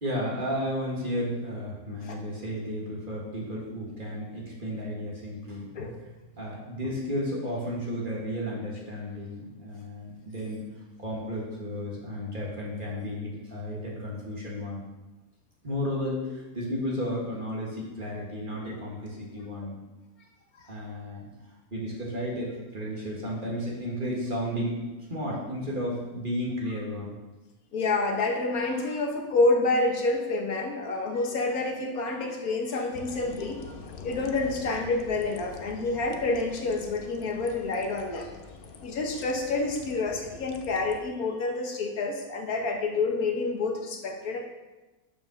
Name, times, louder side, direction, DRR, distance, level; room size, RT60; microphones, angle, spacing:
voice 1, 0.0-5.7 6.4-10.6 11.0-14.8 15.6-19.8 20.7-21.3 21.7-24.8 25.1-27.2, equal, 35° right, -4 dB, 1.9 m, -33 dB
voice 2, 27.7-33.7 34.0-38.3 38.8-44.4, left 3 dB, 75° left, 3 dB, 1.5 m, -28 dB
sound 1, 32.9-41.0, left 5 dB, 55° left, 0.6 m, -45 dB
6.8 x 5.3 x 6.2 m, 1.1 s
omnidirectional pair, 1.6 m